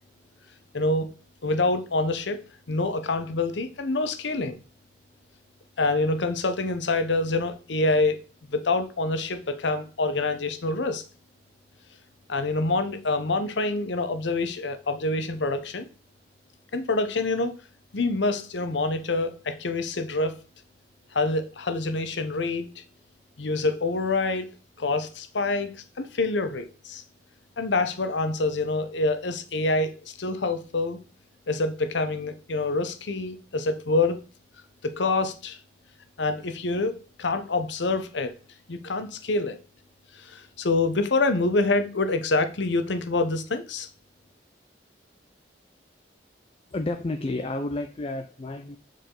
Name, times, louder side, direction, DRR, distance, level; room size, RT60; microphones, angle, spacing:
voice 1, 0.7-1.1 1.4-4.6 5.8-8.2 8.5-11.0 12.3-15.9 16.7-17.6 17.9-20.4 21.1-22.8 23.4-24.5 24.8-27.0 27.6-31.0 31.5-34.2 34.8-35.6 36.2-38.3 38.7-39.6 40.1-43.9, left 3 dB, 75° left, 0.8 m, -26 dB
voice 2, 46.7-48.8, left 2 dB, 30° left, 0.4 m, -31 dB
6.9 x 4.8 x 3.8 m
head